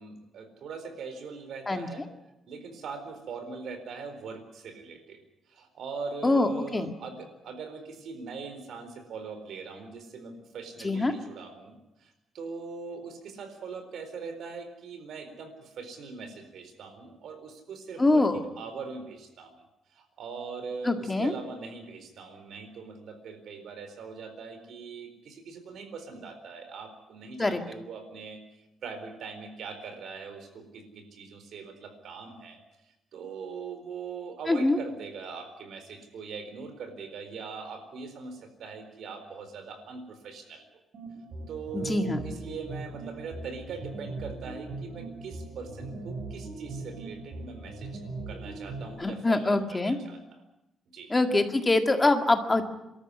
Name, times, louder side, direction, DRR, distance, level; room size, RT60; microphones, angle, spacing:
voice 1, 0.0-2.1 2.5-5.2 5.5-19.6 19.9-28.4 28.8-32.6 33.1-40.7 41.5-47.9 48.3-50.2 50.9-51.1, right 5 dB, 75° right, 8 dB, 4.2 m, -41 dB
voice 2, 6.2-6.9 10.8-11.1 18.0-18.4 20.8-21.3 27.4-27.6 34.5-34.8 41.7-42.2 49.0-50.0 51.1-52.7, left 2 dB, 20° left, 6 dB, 1.9 m, -24 dB
sound 1, 40.9-48.9, right 3 dB, 60° right, 6.8 m, -40 dB
24.5 x 13.5 x 9.8 m, 0.93 s
cardioid pair, 135°, 0 cm